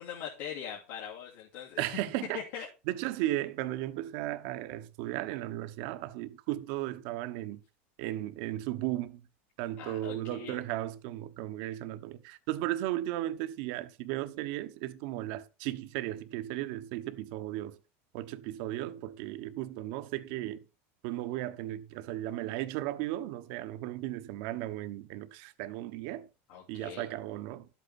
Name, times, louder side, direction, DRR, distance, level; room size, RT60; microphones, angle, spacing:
voice 1, 0.0-2.0 2.3-2.7 9.8-10.6 26.5-27.1, left 8 dB, 75° left, 3.1 m, -41 dB
voice 2, 1.8-2.4 2.9-7.6 8.0-9.2 9.6-17.8 18.1-20.6 21.0-26.3 26.7-27.7, right 15 dB, 65° right, 1.0 m, -35 dB
12.0 x 8.4 x 4.2 m
supercardioid pair, 140°, 7 cm